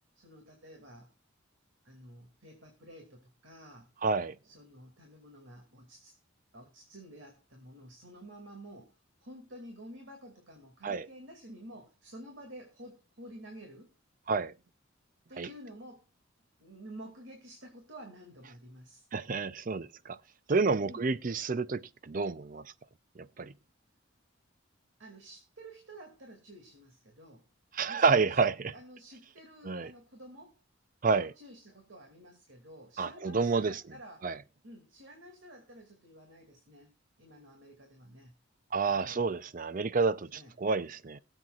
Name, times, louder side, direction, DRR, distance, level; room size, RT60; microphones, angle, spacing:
voice 1, 0.1-1.1 1.8-3.9 4.4-6.2 6.5-13.9 15.3-16.1 16.6-19.0 20.8-21.0 25.0-27.5 27.8-30.6 31.1-34.3 34.6-36.9 37.2-38.3 38.9-39.2 40.3-40.5, right 1 dB, 70° right, 2.4 m, -51 dB
voice 2, 4.0-4.4 10.8-11.1 14.3-14.5 15.4-15.5 19.1-20.2 20.5-22.7 23.2-23.5 27.7-28.7 29.6-29.9 31.0-31.3 33.0-33.8 34.2-34.4 38.7-41.2, right 4 dB, 40° right, 0.5 m, -29 dB
22.0 x 8.0 x 2.4 m
head